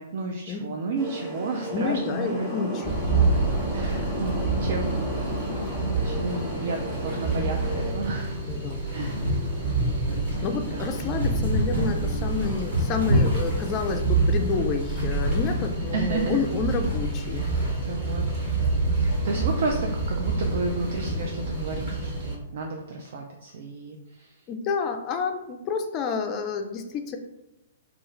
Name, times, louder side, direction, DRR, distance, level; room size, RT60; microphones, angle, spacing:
voice 1, 0.0-2.5 3.7-4.3 4.6-5.1 5.6-8.4 8.9-9.2 9.7-10.0 10.6-11.0 15.9-16.4 17.3-17.5 17.8-18.2 18.9-24.4, right 3 dB, 60° right, 2 dB, 0.3 m, -32 dB
sound 1, 0.9-7.9, equal, 15° left, 0.9 m, -33 dB
voice 2, 1.7-3.3 8.5-8.8 10.4-17.5 24.5-27.2, left 5 dB, 30° left, 5 dB, 0.3 m, -29 dB
sound 2, 2.8-22.3, right 3 dB, 40° right, 1.1 m, -28 dB
sound 3, 9.0-14.3 15.2-15.6, equal, 85° right, 1.0 m, -27 dB
2.4 x 2.3 x 3.0 m, 0.94 s
figure-of-eight pair, 120°, 0 cm